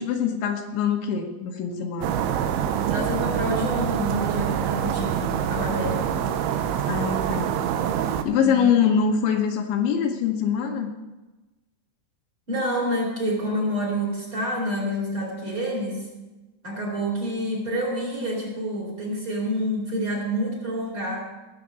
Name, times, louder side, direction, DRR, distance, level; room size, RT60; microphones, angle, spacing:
voice 1, 0.0-2.2 6.9-7.6 8.2-10.9, left 7 dB, 75° left, 2 dB, 3.4 m, -24 dB
sound 1, 2.0-8.2, right 9 dB, 80° right, 3.2 m, -25 dB
voice 2, 2.9-6.1 8.4-8.7 12.5-16.0 16.6-21.2, equal, 25° right, -2 dB, 4.3 m, -28 dB
18.5 x 6.6 x 8.1 m, 1.1 s
omnidirectional pair, 5.6 m